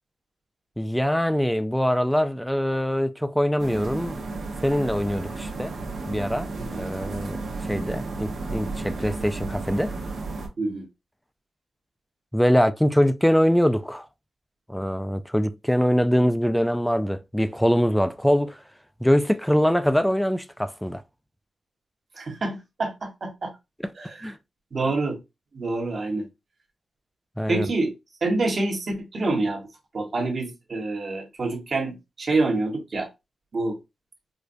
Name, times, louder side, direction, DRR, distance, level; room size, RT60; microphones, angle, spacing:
voice 1, 0.8-4.2 4.6-5.7 6.1-7.4 7.7-10.0 12.3-14.1 14.7-18.6 19.0-21.0 24.2-24.4 27.4-27.7, equal, 5° left, 0.3 m, -23 dB
sound 1, 3.6-10.5, right 3 dB, 80° right, 1.1 m, -33 dB
voice 2, 10.6-10.9 22.2-23.5 24.0-24.3 24.7-25.2 25.5-26.3 27.5-27.9 28.2-29.6 29.9-33.1 33.5-33.8, right 2 dB, 50° right, 1.2 m, -27 dB
4.9 x 2.2 x 2.6 m
cardioid pair, 90°, 0 cm